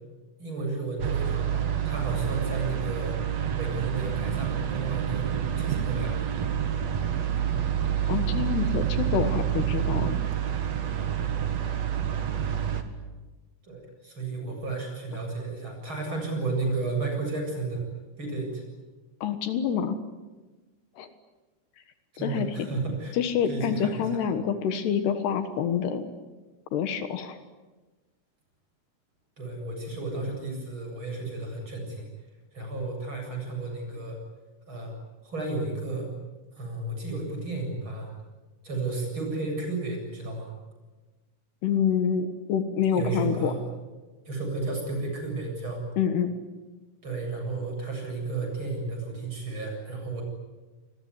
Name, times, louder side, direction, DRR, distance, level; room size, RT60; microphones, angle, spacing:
voice 1, 0.4-3.2 3.5-6.1 8.1-8.2 13.6-17.8 18.2-18.6 22.1-23.2 23.4-24.3 29.4-32.1 32.5-34.2 34.7-34.9 35.2-36.1 36.5-38.1 38.6-40.5 42.9-43.6 44.2-45.8 47.0-50.2, right 3 dB, 30° right, 2 dB, 8.1 m, -33 dB
sound 1, 1.0-12.8, right 9 dB, 50° right, 2.3 m, -28 dB
voice 2, 8.1-10.2 19.2-20.0 21.0-21.1 22.2-22.7 23.1-26.1 26.7-27.4 41.6-43.5 46.0-46.4, left 7 dB, 75° left, 9 dB, 3.5 m, -27 dB
27.5 x 21.5 x 9.6 m, 1.2 s
omnidirectional pair, 4.9 m